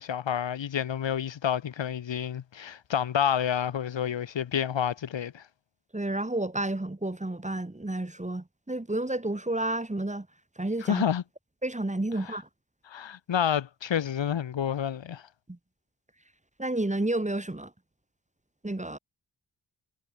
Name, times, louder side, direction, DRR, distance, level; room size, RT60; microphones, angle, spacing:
voice 1, 0.0-5.4 10.8-11.2 12.2-12.4 12.9-15.2, left 9 dB, 80° left, 0.8 m, -29 dB
voice 2, 5.9-10.3 10.6-11.0 11.6-12.5 15.5-15.6 16.6-17.7 18.6-19.0, right 1 dB, 15° right, 1.4 m, -30 dB
wide cardioid pair, 60°, 44 cm